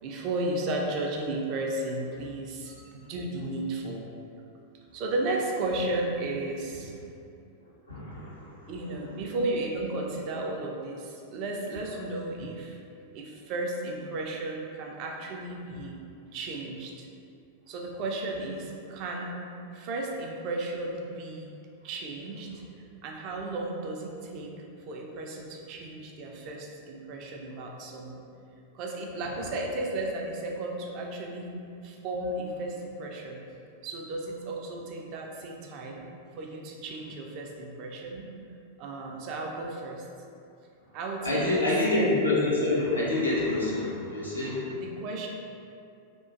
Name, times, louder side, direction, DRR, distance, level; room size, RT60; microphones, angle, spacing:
voice 1, 0.0-4.0 4.9-7.0 8.7-17.1 17.7-19.4 19.7-21.5 21.8-22.5 23.0-24.5 24.9-28.2 28.7-31.6 31.8-33.4 33.8-36.0 36.4-38.3 38.8-40.1 40.9-41.7 44.7-45.3, right 2 dB, 40° right, 0 dB, 0.3 m, -34 dB
voice 2, 7.9-8.7 41.2-44.7, left 2 dB, 85° left, -8 dB, 0.5 m, -27 dB
2.4 x 2.1 x 2.4 m, 2.5 s
figure-of-eight pair, 90°, 0 cm